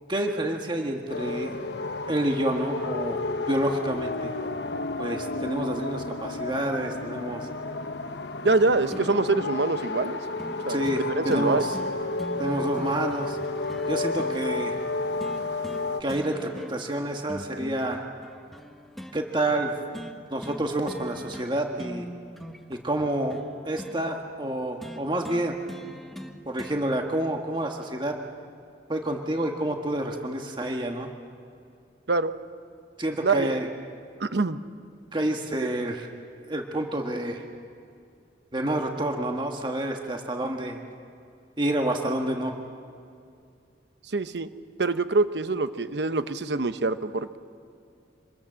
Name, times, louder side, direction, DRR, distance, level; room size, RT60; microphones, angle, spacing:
voice 1, 0.1-1.6 2.1-3.2 3.5-4.3 5.0-7.5 10.7-11.8 12.4-13.4 13.9-14.8 16.0-18.0 19.1-19.7 20.3-22.1 22.7-25.6 26.5-28.2 28.9-31.1 33.0-33.7 35.1-36.1 36.5-37.4 38.5-40.8 41.6-42.5, right 1 dB, 25° right, 3 dB, 1.5 m, -28 dB
sound 1, 1.1-16.0, left 3 dB, 70° left, 1.1 m, -32 dB
voice 2, 8.4-10.2 10.7-11.6 32.1-32.3 33.2-33.6 34.2-34.6 44.1-44.5 44.8-47.4, right 3 dB, 70° right, 11 dB, 0.9 m, -25 dB
sound 2, 8.9-9.5 10.4-10.6 10.8-11.0 11.3-14.4 15.2-15.8 16.1-16.9 17.3-19.2 19.9-20.1 20.4-20.6 20.9-21.5 21.8-24.0 24.8-26.8 27.8-27.9, equal, ahead, 1.3 m, -41 dB
26.0 x 20.5 x 7.6 m, 2.5 s
head